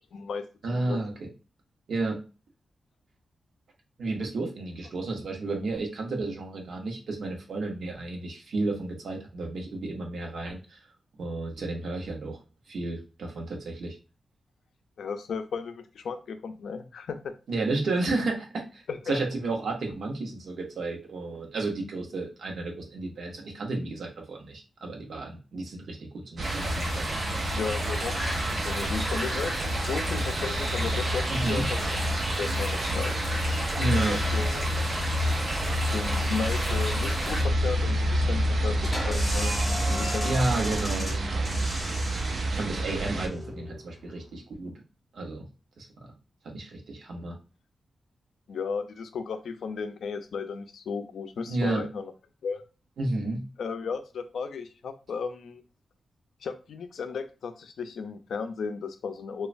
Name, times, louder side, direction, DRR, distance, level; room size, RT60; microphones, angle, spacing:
voice 1, 0.1-0.5 0.7-1.0 15.0-17.3 18.9-19.2 27.5-28.2 28.5-32.0 32.4-33.1 34.0-34.7 35.9-39.5 39.9-40.4 48.5-52.1 52.4-52.6 53.6-55.6 56.4-59.5, left 5 dB, 75° left, 9 dB, 0.4 m, -35 dB
voice 2, 0.6-1.3 1.9-2.2 4.0-10.8 11.2-12.4 12.7-14.0 17.5-27.2 31.3-31.6 33.8-34.2 40.2-41.5 42.5-44.7 45.1-45.5 45.8-45.9 46.4-47.4 51.5-51.9 53.0-53.4, right 2 dB, 70° right, 1 dB, 0.8 m, -32 dB
sound 1, 26.4-37.4, equal, 15° right, 1.0 m, -33 dB
sound 2, 26.4-43.3, equal, 50° right, 0.4 m, -28 dB
sound 3, 38.8-44.2, equal, 10° left, 0.7 m, -36 dB
3.1 x 2.2 x 2.5 m, 0.33 s
wide cardioid pair, 175°, 0 cm